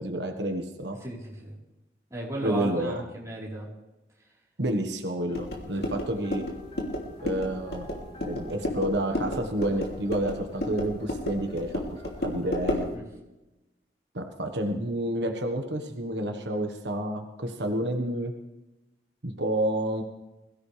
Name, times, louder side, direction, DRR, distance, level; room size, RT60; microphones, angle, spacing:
voice 1, 0.0-1.0 2.4-2.9 4.6-6.4 7.2-7.9 8.2-12.9 14.1-18.3 19.2-20.0, right 1 dB, 85° right, 4 dB, 1.4 m, -29 dB
voice 2, 1.0-1.6 2.1-3.7 5.5-5.7 12.9-13.0, right 2 dB, 20° right, -5 dB, 4.2 m, -36 dB
sound 1, 5.3-12.9, left 1 dB, 65° left, 2.9 m, -32 dB
sound 2, 5.3-12.9, left 1 dB, 35° left, 2.9 m, -50 dB
22.0 x 15.5 x 3.4 m, 1.0 s
head